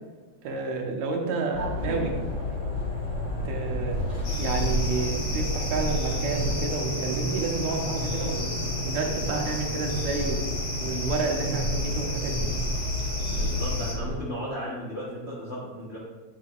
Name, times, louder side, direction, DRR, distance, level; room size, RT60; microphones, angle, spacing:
voice 1, 0.4-2.2 3.4-4.0 4.4-8.6 8.8-10.5 10.8-12.5, right 3 dB, 70° right, 1 dB, 2.2 m, -30 dB
sound 1, 1.5-14.2, left 1 dB, 20° left, 2.0 m, -30 dB
sound 2, 4.2-13.9, left 1 dB, 50° left, 1.3 m, -34 dB
voice 2, 13.3-16.0, equal, 70° left, -6 dB, 0.6 m, -35 dB
8.9 x 6.7 x 2.5 m, 1.3 s
omnidirectional pair, 3.4 m